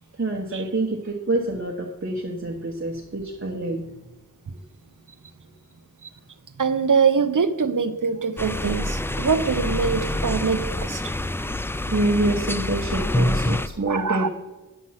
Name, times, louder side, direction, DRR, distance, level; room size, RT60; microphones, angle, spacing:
voice 1, 0.2-3.9 11.9-14.3, right 2 dB, 40° right, -1 dB, 1.1 m, -26 dB
voice 2, 6.6-11.0 13.9-14.3, right 5 dB, 60° right, 9 dB, 0.8 m, -23 dB
sound 1, 8.4-13.7, left 1 dB, 5° left, 0.3 m, -26 dB
9.2 x 7.4 x 5.7 m, 1.1 s
wide cardioid pair, 65°, 34 cm